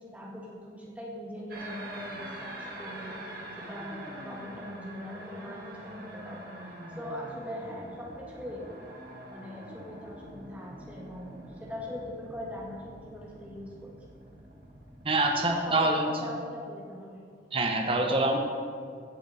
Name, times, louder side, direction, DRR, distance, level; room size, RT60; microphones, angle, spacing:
voice 1, 0.0-8.7 9.3-13.9 15.2-17.2, equal, 10° right, -4 dB, 1.9 m, -41 dB
sound 1, 1.5-15.5, right 1 dB, 50° right, 1.8 m, -44 dB
voice 2, 15.0-16.1 17.5-18.4, right 2 dB, 30° right, 2 dB, 0.9 m, -25 dB
15.5 x 7.3 x 4.3 m, 2.2 s
head